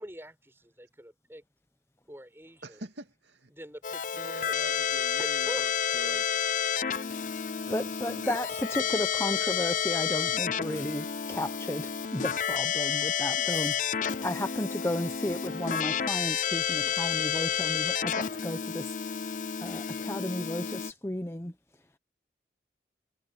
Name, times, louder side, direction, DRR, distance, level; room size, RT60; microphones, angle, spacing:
voice 1, 0.0-1.4 2.1-2.8 3.5-4.8 5.2-7.1, equal, 15° right, 6.4 m, -45 dB
voice 2, 2.6-3.5 4.1-6.5 7.6-8.3 8.8-8.9 10.3-10.5 14.9-15.1, right 1 dB, 85° right, 2.6 m, -46 dB
Keyboard (musical), 3.8-20.9, left 8 dB, 45° left, 0.5 m, -30 dB
voice 3, 7.7-19.2 19.6-21.5, left 1 dB, 15° left, 0.8 m, -34 dB
head